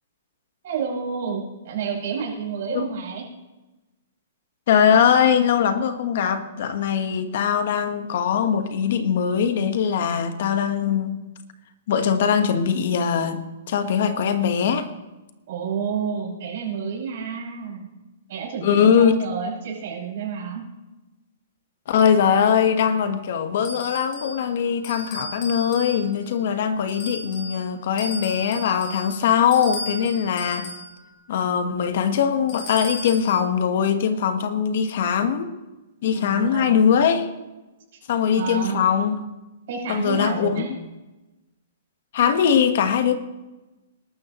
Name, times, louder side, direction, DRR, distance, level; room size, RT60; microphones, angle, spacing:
voice 1, 0.6-3.2 15.5-17.9 18.3-20.6 36.1-36.8 38.4-38.9 39.7-40.7, right 6 dB, 50° right, -3 dB, 5.6 m, -30 dB
voice 2, 4.7-11.2 11.9-14.9 18.6-19.1 21.9-30.7 31.3-35.5 36.0-37.3 38.1-39.2 39.9-40.8 42.1-43.2, left 7 dB, 50° left, 9 dB, 1.2 m, -21 dB
sound 1, 23.6-24.4 24.8-26.3 26.9-27.6 28.0-30.9 32.5-33.3, left 1 dB, 35° left, 4.8 m, -35 dB
21.0 x 12.5 x 3.0 m, 1.1 s
hypercardioid pair, 165°, 0 cm